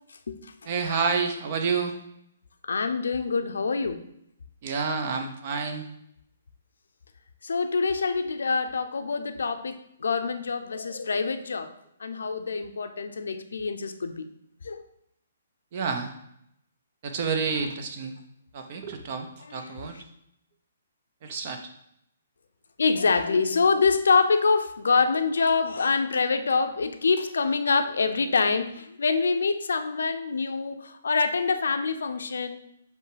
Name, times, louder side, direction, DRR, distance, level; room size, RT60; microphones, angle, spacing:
voice 1, 0.7-1.9 4.6-5.9 15.7-16.1 17.0-18.2 18.5-20.0 21.2-21.6, right 5 dB, 35° right, 5 dB, 0.8 m, -29 dB
voice 2, 2.6-4.0 7.4-11.7 12.0-14.3 14.6-14.8 19.4-19.7 19.9-20.0 22.8-32.6, left 4 dB, 85° left, 8 dB, 0.7 m, -25 dB
7.6 x 3.3 x 5.0 m, 0.76 s
hypercardioid pair, 170°, 0 cm